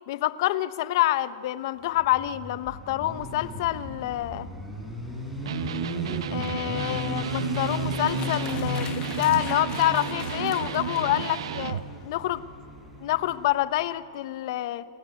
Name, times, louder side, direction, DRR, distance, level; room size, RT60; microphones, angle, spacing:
voice 1, 0.1-4.5 6.3-12.4 13.0-14.9, left 15 dB, 55° left, 15 dB, 0.9 m, -27 dB
Motorcycle, 2.0-13.7, left 1 dB, ahead, 5.3 m, -36 dB
Electric guitar, 5.4-11.9, right 9 dB, 80° right, 1.0 m, -33 dB
sound 1, 8.0-12.1, left 11 dB, 30° left, 1.4 m, -42 dB
28.5 x 20.0 x 9.5 m, 2.6 s
supercardioid pair, 155°, 3 cm